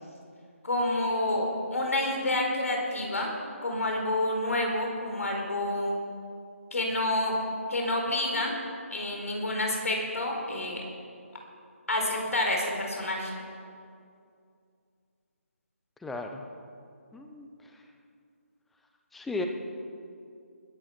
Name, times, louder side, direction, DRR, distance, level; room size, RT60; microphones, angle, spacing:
voice 1, 0.6-3.3 3.6-6.0 6.7-7.4 7.7-8.5 8.9-10.8 11.9-13.3, left 1 dB, 75° left, 0 dB, 4.3 m, -28 dB
voice 2, 16.0-16.5 17.1-17.5 19.1-19.5, left 2 dB, ahead, 4 dB, 0.4 m, -35 dB
20.5 x 9.2 x 5.9 m, 2.4 s
hypercardioid pair, 170°, 8 cm